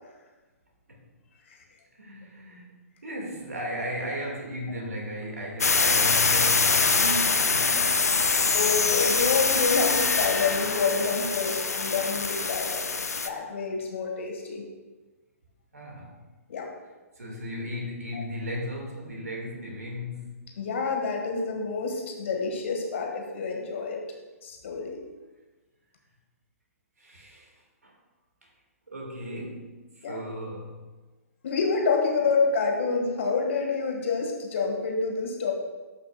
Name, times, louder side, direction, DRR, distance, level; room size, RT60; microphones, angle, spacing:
voice 1, 2.0-9.1 15.7-16.2 17.2-20.4 27.0-27.5 27.8-28.0 28.4-28.5 28.9-30.9, equal, 75° right, -1 dB, 2.0 m, -36 dB
sound 1, 5.6-13.3, left 4 dB, 75° left, 0.5 m, -24 dB
voice 2, 8.5-14.7 16.5-16.7 18.1-18.2 20.6-24.0 24.4-25.0 30.0-30.2 31.4-35.5, left 4 dB, 55° left, 1 dB, 1.7 m, -28 dB
12.5 x 5.6 x 2.4 m, 1.2 s
figure-of-eight pair, 125°, 8 cm